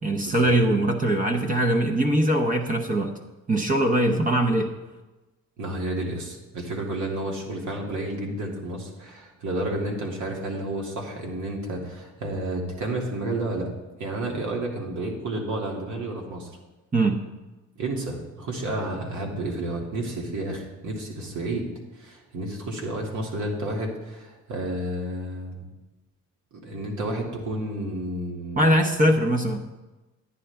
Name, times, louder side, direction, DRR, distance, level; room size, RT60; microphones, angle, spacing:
voice 1, 0.0-3.1 3.5-4.7 16.9-17.2 28.6-29.6, right 1 dB, 25° right, 3 dB, 1.0 m, -21 dB
voice 2, 5.6-13.7 14.0-16.6 17.8-21.7 22.0-25.6 26.5-28.7, right 1 dB, 70° right, -1 dB, 2.4 m, -31 dB
10.0 x 9.9 x 3.5 m, 1.1 s
cardioid pair, 90°, 30 cm